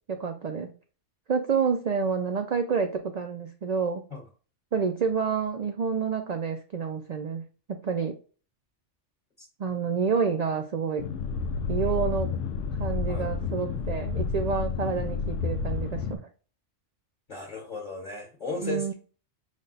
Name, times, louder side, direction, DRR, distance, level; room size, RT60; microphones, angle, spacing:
voice 1, 0.1-0.7 1.3-4.0 4.7-7.4 7.7-8.2 9.6-11.0 11.7-12.4 12.8-16.2 18.6-18.9, right 6 dB, 55° right, 5 dB, 0.4 m, -28 dB
sound 1, 11.0-16.2, left 5 dB, 85° left, 0.9 m, -30 dB
voice 2, 17.3-18.9, left 2 dB, 40° left, -1 dB, 1.2 m, -35 dB
5.2 x 2.2 x 3.9 m, 0.37 s
omnidirectional pair, 1.2 m